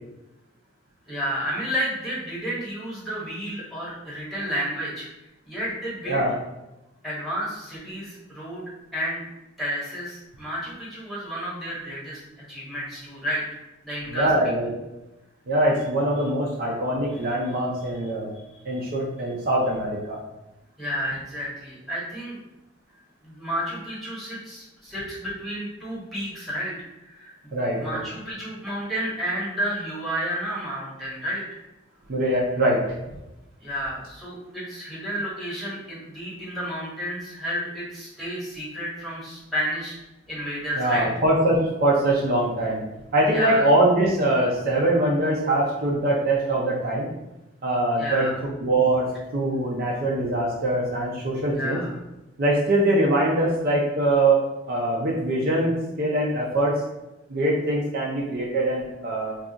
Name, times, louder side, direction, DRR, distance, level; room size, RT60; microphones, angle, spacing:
voice 1, 1.1-5.1 5.4-6.2 7.0-8.6 8.9-9.2 9.6-12.2 12.5-14.3 17.2-17.3 20.8-22.4 23.2-26.7 27.0-27.5 27.8-31.6 33.6-40.0 40.3-41.1 43.3-43.6 48.0-48.4 51.5-51.9, equal, ahead, -7 dB, 1.0 m, -31 dB
voice 2, 6.1-6.4 14.1-14.7 15.5-18.3 18.6-20.2 27.5-28.0 32.1-32.8 40.8-42.8 43.1-47.1 47.6-48.3 48.6-51.8 52.4-56.8 57.3-59.4, right 1 dB, 50° right, -3 dB, 0.5 m, -23 dB
2.4 x 2.3 x 3.8 m, 0.97 s
head